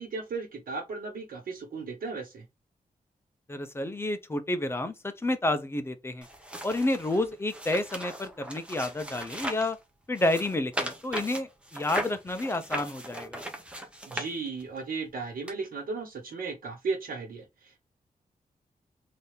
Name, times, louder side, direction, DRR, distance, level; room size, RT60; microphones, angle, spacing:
voice 1, 0.0-2.4 14.0-17.8, right 4 dB, 80° right, 1.5 m, -35 dB
voice 2, 3.5-6.3 6.6-9.8 10.1-13.4, left 2 dB, 15° left, 0.6 m, -30 dB
sound 1, 6.2-9.7 10.1-14.8 15.5-15.6, right 1 dB, 5° right, 0.9 m, -38 dB
3.9 x 2.7 x 3.4 m
wide cardioid pair, 155°, 15 cm